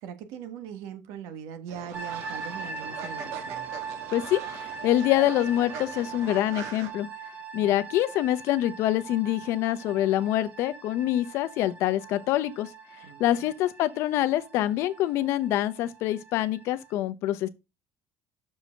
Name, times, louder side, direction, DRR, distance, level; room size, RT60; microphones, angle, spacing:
voice 1, 0.0-3.7 7.5-7.7 13.0-13.5, right 8 dB, 90° right, 1.5 m, -41 dB
Fowl, 1.7-6.9, right 6 dB, 70° right, 2.0 m, -42 dB
sound 1, 1.9-16.9, right 5 dB, 25° right, 1.1 m, -41 dB
voice 2, 4.8-7.1 7.5-12.7 13.2-17.5, left 13 dB, 60° left, 0.7 m, -25 dB
6.6 x 4.8 x 6.3 m
cardioid pair, 180°, 5 cm